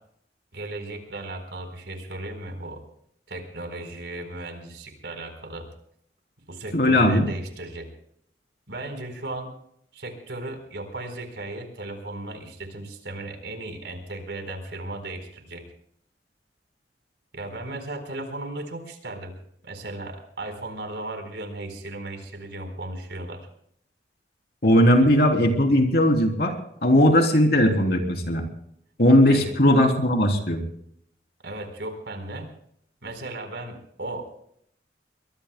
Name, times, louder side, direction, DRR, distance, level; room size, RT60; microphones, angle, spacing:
voice 1, 0.5-2.8 3.3-5.7 6.5-7.9 8.7-9.5 9.9-15.6 17.3-19.3 19.6-23.5 25.0-25.1 29.3-29.5 31.4-32.5 33.0-34.4, right 2 dB, 75° right, 6 dB, 4.3 m, -36 dB
voice 2, 6.7-7.3 24.6-26.5 26.8-28.4 29.0-30.6, left 1 dB, 55° left, 3 dB, 3.3 m, -18 dB
23.0 x 22.5 x 2.2 m, 0.68 s
head